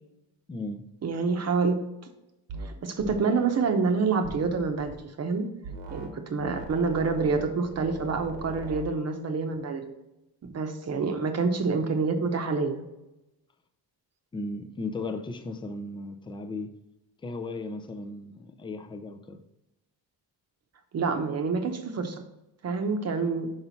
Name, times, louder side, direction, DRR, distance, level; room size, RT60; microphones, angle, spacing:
voice 1, 0.5-0.8 14.3-16.7 17.2-19.4, left 2 dB, 10° left, 6 dB, 0.4 m, -36 dB
voice 2, 1.0-1.8 2.6-5.5 5.9-9.9 10.5-12.8 20.9-22.2 22.6-23.5, right 4 dB, 35° right, 6 dB, 0.9 m, -27 dB
sound 1, 2.5-2.7 3.0-3.2 4.2-5.0 5.6-6.1 6.4-8.9, right 4 dB, 85° right, 1.3 m, -40 dB
5.9 x 5.3 x 4.0 m, 0.90 s
cardioid pair, 160°, 42 cm